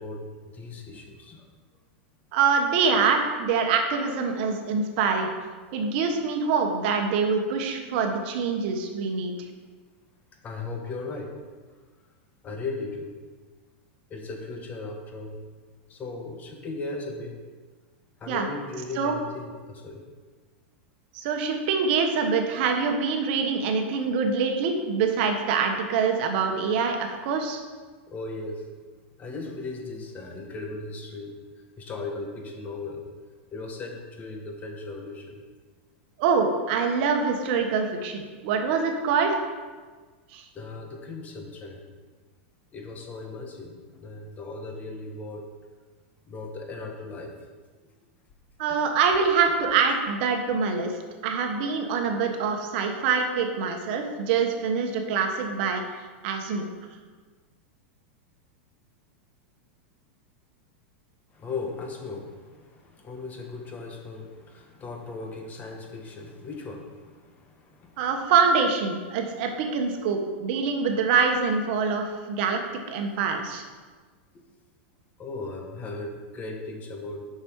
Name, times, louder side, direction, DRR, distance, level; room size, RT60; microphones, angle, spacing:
voice 1, 0.0-1.4 10.4-11.3 12.4-13.1 14.1-15.4 15.9-17.3 18.2-20.0 28.1-28.7 29.2-31.4 31.8-33.0 33.5-35.4 40.5-41.8 42.7-45.4 46.3-47.3 61.3-68.1 69.2-69.3 75.2-77.2, left 3 dB, 25° left, 2 dB, 1.3 m, -37 dB
voice 2, 2.3-5.3 5.7-9.3 18.3-18.5 19.0-19.1 21.1-27.6 36.2-39.3 40.3-40.4 48.6-50.9 51.2-55.8 56.2-56.7 68.0-72.6 72.9-73.6, right 5 dB, 60° right, 4 dB, 1.2 m, -25 dB
7.0 x 5.9 x 4.7 m, 1.4 s
supercardioid pair, 130°, 6 cm